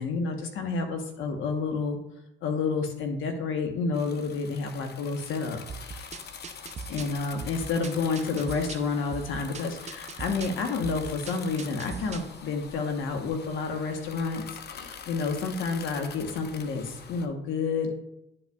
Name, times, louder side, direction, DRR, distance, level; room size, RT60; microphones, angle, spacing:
voice 1, 0.0-2.0 2.4-6.1 6.9-17.9, left 4 dB, 80° left, 5 dB, 1.1 m, -30 dB
sound 1, 3.9-17.3, left 7 dB, 55° left, 0.7 m, -45 dB
sound 2, 5.7-12.4, right 5 dB, 35° right, 0.6 m, -41 dB
10.5 x 5.4 x 2.3 m, 0.85 s
cardioid pair, 90°, 20 cm